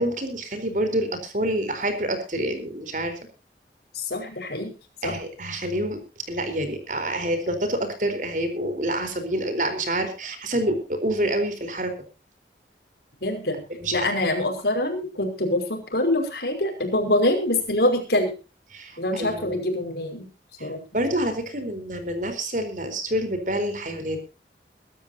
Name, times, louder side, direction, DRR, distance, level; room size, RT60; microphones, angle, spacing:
voice 1, 0.0-3.1 5.0-6.0 6.3-11.9 13.8-14.1 18.7-19.6 20.6-24.3, right 1 dB, 45° right, 8 dB, 4.3 m, -27 dB
voice 2, 3.9-4.7 5.0-5.1 13.2-13.6 13.9-18.3 19.0-20.3 20.6-20.8, left 1 dB, 70° left, 5 dB, 5.4 m, -25 dB
23.0 x 13.0 x 2.8 m, 0.33 s
head